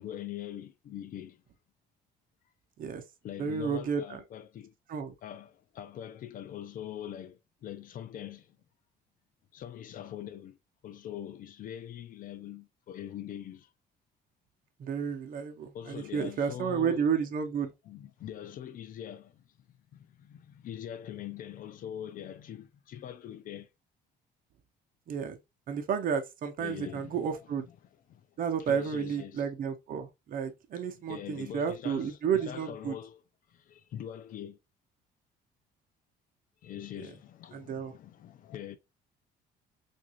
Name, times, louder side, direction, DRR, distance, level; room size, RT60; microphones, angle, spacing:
voice 1, 0.0-1.4 3.2-4.7 5.2-8.6 9.5-10.6 10.8-13.7 15.7-17.1 17.8-23.7 26.6-27.7 28.1-28.3 28.6-29.5 30.8-33.2 33.5-34.6 36.6-38.8, left 10 dB, 55° left, 0.5 m, -43 dB
voice 2, 3.4-4.2 4.9-5.1 14.8-17.7 25.1-25.4 25.7-27.7 28.4-33.0 37.5-37.9, right 7 dB, 55° right, 0.8 m, -31 dB
3.6 x 2.6 x 2.9 m
cardioid pair, 110°, 17 cm